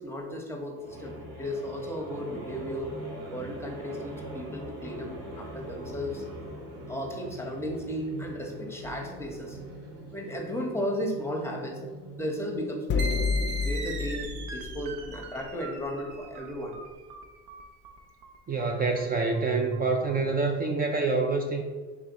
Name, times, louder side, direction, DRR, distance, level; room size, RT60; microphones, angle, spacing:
voice 1, 0.0-2.9 3.3-6.2 6.9-9.6 10.1-11.8 12.2-13.1 13.6-16.7, equal, 10° left, 1 dB, 0.9 m, -35 dB
sound 1, 0.8-14.0, right 1 dB, 85° right, 1.5 m, -42 dB
sound 2, 8.8-9.2 12.9-15.2, left 5 dB, 35° left, 0.5 m, -30 dB
Arpeggio pitch down, 13.0-20.2, right 2 dB, 65° right, 0.7 m, -40 dB
voice 2, 18.5-21.6, right 3 dB, 30° right, 2 dB, 0.4 m, -26 dB
3.4 x 3.2 x 4.1 m, 1.4 s
supercardioid pair, 85°, 33 cm